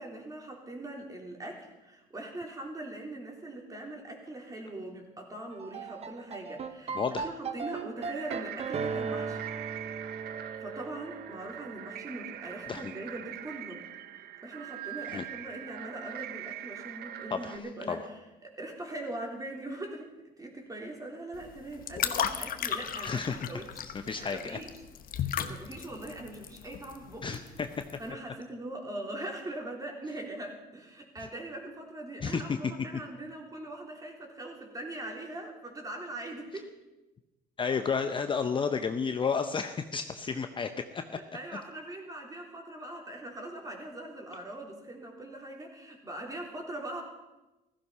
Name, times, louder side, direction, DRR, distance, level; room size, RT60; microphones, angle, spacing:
voice 1, 0.0-9.5 10.6-13.8 14.4-18.0 18.4-20.1 20.4-24.7 25.1-27.4 28.0-36.7 41.3-47.0, right 1 dB, 20° right, 1 dB, 3.6 m, -41 dB
sound 1, 5.5-13.8, right 5 dB, 40° right, 1.0 m, -38 dB
voice 2, 6.9-7.3 12.7-12.9 15.1-15.2 17.3-18.0 23.0-23.5 23.8-24.6 27.2-27.8 32.2-32.6 37.6-41.2, left 5 dB, 30° left, 8 dB, 0.8 m, -32 dB
sound 2, 8.0-17.6, right 12 dB, 70° right, 0.9 m, -43 dB
sound 3, 21.3-28.1, left 9 dB, 55° left, 1.2 m, -36 dB
15.5 x 14.5 x 5.6 m, 1.0 s
cardioid pair, 110°, 17 cm